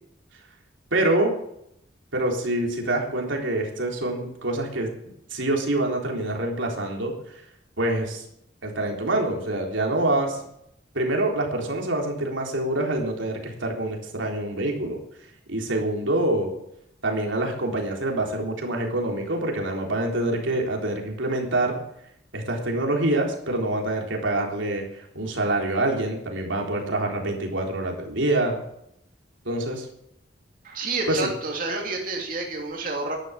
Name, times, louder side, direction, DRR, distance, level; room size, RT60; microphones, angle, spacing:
voice 1, 0.9-1.3 2.1-4.9 5.3-7.4 7.8-8.2 8.6-10.4 10.9-15.0 15.5-16.5 17.0-21.8 22.3-28.6 29.5-29.9 31.1-31.2, right 1 dB, 90° right, 1 dB, 3.7 m, -26 dB
voice 2, 30.6-33.2, right 3 dB, 45° right, 0 dB, 2.8 m, -29 dB
12.0 x 11.5 x 7.1 m, 0.76 s
head